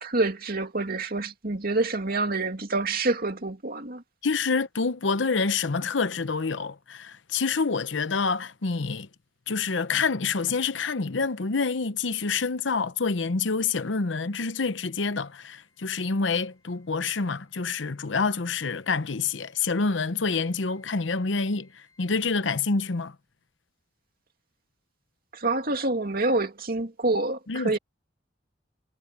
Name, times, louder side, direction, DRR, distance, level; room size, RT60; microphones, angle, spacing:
voice 1, 0.0-4.0 25.3-27.8, right 2 dB, 55° right, 2.5 m, -27 dB
voice 2, 4.2-9.1 9.5-23.1 27.5-27.8, left 4 dB, 90° left, 0.9 m, -27 dB
Wind instrument woodwind instrument, 14.1-22.6, left 3 dB, 20° left, 6.8 m, -67 dB
head